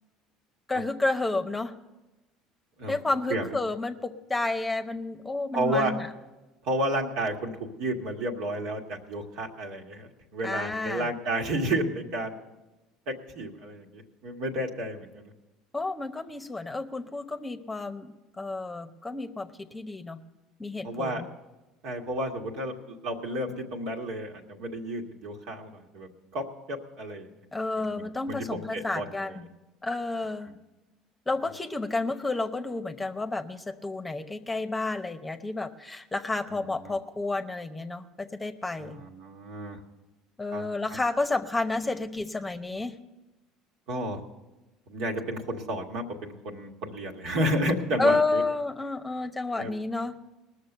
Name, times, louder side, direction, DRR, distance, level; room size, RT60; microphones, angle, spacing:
voice 1, 0.7-1.8 2.9-6.1 10.4-11.1 15.7-20.2 20.6-21.3 27.5-29.5 29.8-30.6 31.3-39.0 40.4-43.0 48.0-50.2, left 3 dB, 15° left, 8 dB, 0.9 m, -30 dB
voice 2, 5.5-6.0 6.6-7.5 7.8-12.4 13.1-15.3 20.8-21.2 21.8-27.4 27.8-29.3 36.8-36.9 38.8-39.8 40.5-41.0 43.9-44.2 44.9-48.4 49.6-49.7, right 1 dB, 70° right, 1 dB, 1.8 m, -32 dB
19.5 x 6.7 x 6.7 m, 1.1 s
supercardioid pair, 85°, 0 cm